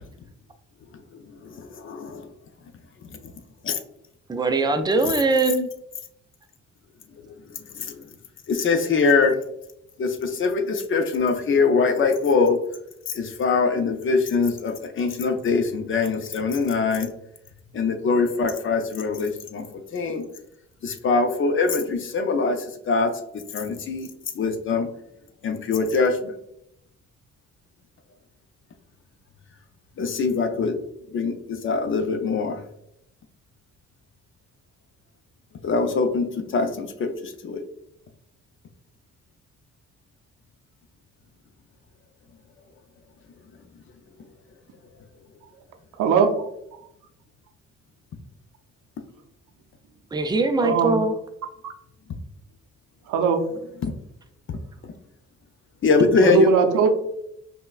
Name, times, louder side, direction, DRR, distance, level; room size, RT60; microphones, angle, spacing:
voice 1, 1.4-2.3 3.6-3.8 7.5-8.0 8.5-9.4 10.0-12.6 13.1-17.1 17.7-20.2 20.8-24.1 24.3-24.9 25.4-26.3 30.0-30.8 31.1-32.6 35.6-37.6 53.8-53.9 54.5-54.6 55.8-56.5, left 4 dB, 45° left, 0.5 m, -23 dB
voice 2, 4.3-5.7 50.1-51.2, right 3 dB, 15° right, 0.4 m, -21 dB
voice 3, 46.0-46.5 50.6-51.0 53.1-53.5 56.2-56.9, right 5 dB, 85° right, 0.6 m, -19 dB
5.3 x 2.2 x 2.3 m
cardioid pair, 90°, 30 cm